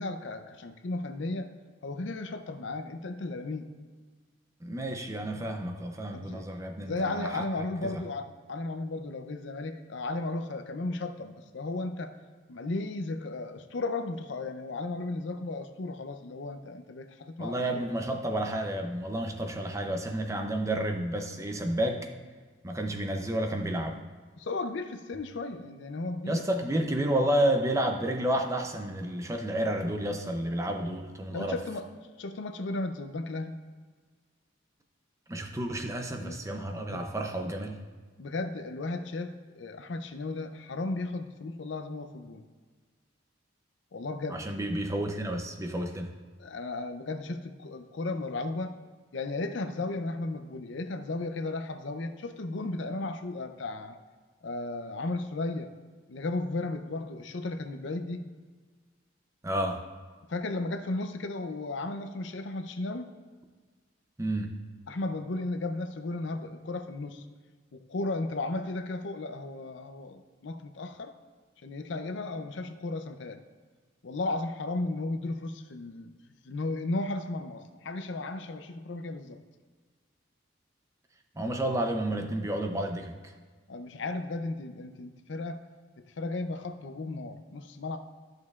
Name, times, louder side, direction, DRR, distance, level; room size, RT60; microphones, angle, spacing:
voice 1, 0.0-1.5 1.8-3.7 6.1-6.5 6.8-12.1 12.5-17.8 24.4-26.4 31.3-31.9 32.2-33.6 36.2-36.4 36.9-37.0 38.2-42.4 43.9-44.4 46.4-48.8 49.1-54.0 54.4-55.7 56.1-58.3 60.3-63.1 64.9-67.2 67.7-71.1 71.6-73.4 74.0-76.1 76.4-79.4 83.7-85.6 86.2-88.0, left 2 dB, 65° left, 8 dB, 0.5 m, -35 dB
voice 2, 4.6-7.5 7.8-8.1 17.4-22.1 22.6-24.0 26.3-31.6 35.3-37.8 44.3-46.1 59.4-59.8 64.2-64.6 81.4-83.3, right 1 dB, 15° right, 4 dB, 0.5 m, -31 dB
13.0 x 6.5 x 2.4 m, 1.4 s
head